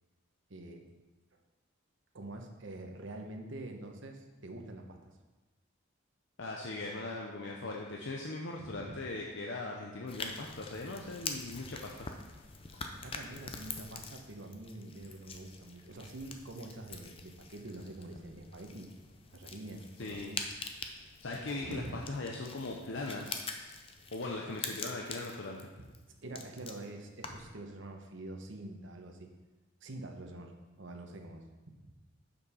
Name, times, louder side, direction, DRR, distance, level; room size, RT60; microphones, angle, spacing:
voice 1, 0.5-0.9 1.3-1.4 2.1-5.1 8.6-9.0 11.7-11.8 12.9-18.9 19.3-20.4 21.4-22.0 25.8-25.9 26.2-29.3 29.8-31.4, right 2 dB, 60° right, 3 dB, 1.0 m, -46 dB
voice 2, 6.4-12.1 12.7-12.8 20.0-20.3 21.2-23.7 24.1-25.6, left 2 dB, 60° left, -1 dB, 0.7 m, -39 dB
sound 1, 10.1-27.6, left 4 dB, 25° left, 0.5 m, -45 dB
6.9 x 5.4 x 5.6 m, 1.2 s
head